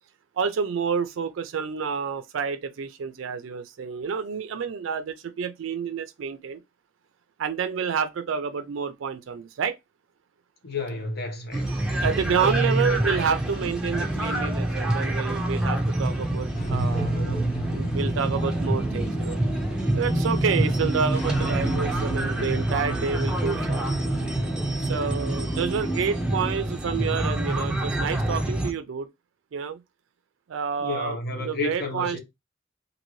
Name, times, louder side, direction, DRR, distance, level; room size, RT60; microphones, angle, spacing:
voice 1, 0.4-6.6 7.4-9.8 11.9-19.4 19.9-23.9 24.8-29.1 29.5-29.8 30.5-32.2, right 6 dB, 80° right, 0.4 m, -29 dB
voice 2, 10.6-11.7 30.8-32.2, left 3 dB, 55° left, 0.9 m, -31 dB
sound 1, 11.5-28.7, right 1 dB, 5° right, 0.6 m, -27 dB
sound 2, 16.5-26.5, right 1 dB, 40° left, 1.1 m, -32 dB
2.6 x 2.6 x 3.0 m
head